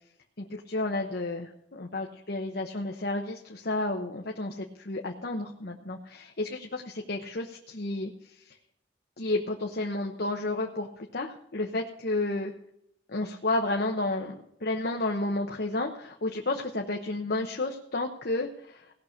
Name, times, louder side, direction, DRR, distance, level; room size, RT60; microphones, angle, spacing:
voice 1, 0.4-8.1 9.2-12.5 13.1-18.8, left 2 dB, 55° left, 2 dB, 1.0 m, -31 dB
18.0 x 6.7 x 5.8 m, 0.73 s
head